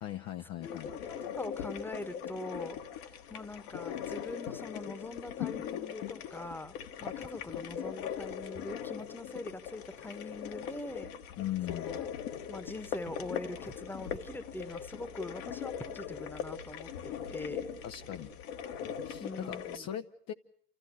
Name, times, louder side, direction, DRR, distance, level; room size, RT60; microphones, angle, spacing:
voice 1, 0.0-0.9 11.4-11.9 17.8-18.3 19.0-20.3, left 12 dB, 35° left, 7 dB, 0.7 m, -39 dB
sound 1, 0.6-19.8, left 9 dB, 55° left, 1.5 m, -40 dB
voice 2, 0.6-6.7 7.0-11.1 11.7-12.1 12.5-17.7 19.2-19.9, left 2 dB, 5° left, 15 dB, 1.2 m, -43 dB
sound 2, 11.9-18.4, right 1 dB, 85° right, 0.9 m, -55 dB
29.0 x 14.0 x 6.8 m, 0.73 s
figure-of-eight pair, 75°, 45 cm